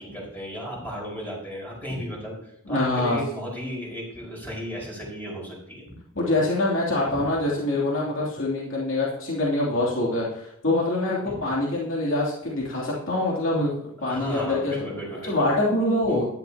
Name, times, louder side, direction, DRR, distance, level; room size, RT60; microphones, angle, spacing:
voice 1, 0.0-5.8 7.1-7.3 11.2-11.4 14.0-15.3 16.0-16.3, equal, 10° left, -4 dB, 4.9 m, -34 dB
voice 2, 2.7-3.2 6.1-13.7 14.0-14.7 15.2-16.3, left 2 dB, 60° left, -4 dB, 3.0 m, -24 dB
15.5 x 12.5 x 2.9 m, 0.74 s
head